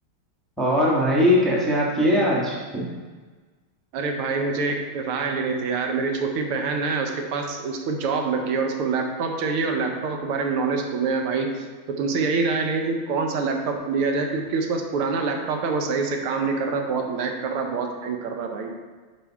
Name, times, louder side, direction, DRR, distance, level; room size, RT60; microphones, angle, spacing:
voice 1, 0.6-2.9, left 1 dB, ahead, -5 dB, 1.1 m, -20 dB
voice 2, 3.9-18.7, right 4 dB, 80° right, 3 dB, 1.7 m, -26 dB
7.2 x 5.6 x 4.7 m, 1.4 s
omnidirectional pair, 2.4 m